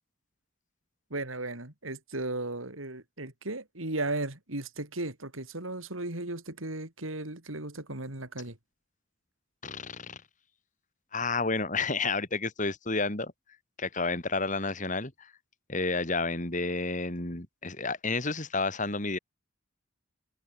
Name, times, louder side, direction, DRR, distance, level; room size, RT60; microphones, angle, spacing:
voice 1, 1.1-8.6, right 2 dB, 90° right, 4.4 m, -36 dB
voice 2, 9.6-10.2 11.1-13.3 13.8-15.3 15.7-19.2, left 3 dB, 40° left, 3.0 m, -30 dB
head